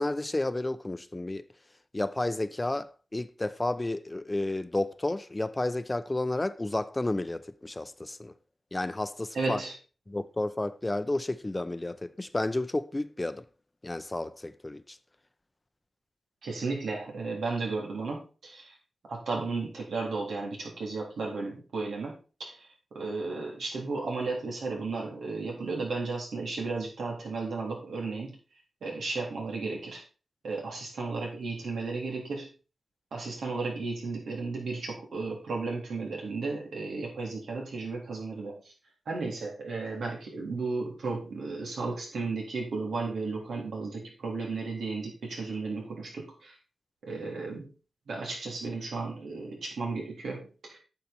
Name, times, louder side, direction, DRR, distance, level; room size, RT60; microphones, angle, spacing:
voice 1, 0.0-1.4 1.9-8.3 8.7-9.6 10.1-13.5 13.8-15.0, left 2 dB, 25° left, 0.7 m, -31 dB
voice 2, 9.3-9.7 16.4-18.8 19.1-22.7 22.9-28.4 28.8-30.0 30.4-32.5 33.1-38.7 39.1-46.6 47.0-47.7 48.1-50.8, right 3 dB, 85° right, 3.7 m, -34 dB
9.4 x 6.7 x 4.4 m
cardioid pair, 60°, 0 cm